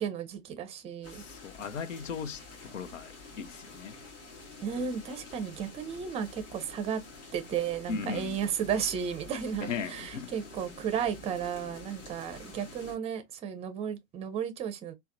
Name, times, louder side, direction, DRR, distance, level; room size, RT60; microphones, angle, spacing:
voice 1, 0.0-1.2 4.6-7.0 7.3-14.9, right 8 dB, 15° right, 0.5 m, -34 dB
sound 1, 1.0-13.0, left 3 dB, 40° left, 1.8 m, -48 dB
voice 2, 1.1-4.0 4.8-4.9 7.9-8.4 9.6-10.3, left 6 dB, 85° left, 0.5 m, -38 dB
4.0 x 2.1 x 2.5 m
hypercardioid pair, 105°, 37 cm